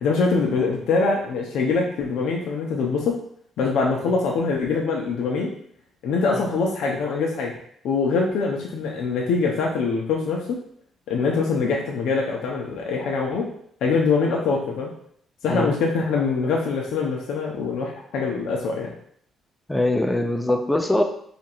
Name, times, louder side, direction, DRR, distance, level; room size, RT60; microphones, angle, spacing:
voice 1, 0.0-3.2 3.6-5.5 6.0-7.5 7.8-10.6 11.1-13.5 13.8-14.9 15.4-18.9, left 4 dB, 80° left, -1 dB, 0.6 m, -23 dB
voice 2, 19.7-21.0, left 1 dB, 10° left, 5 dB, 0.5 m, -22 dB
2.9 x 2.5 x 4.3 m, 0.65 s
cardioid pair, 90°, 0 cm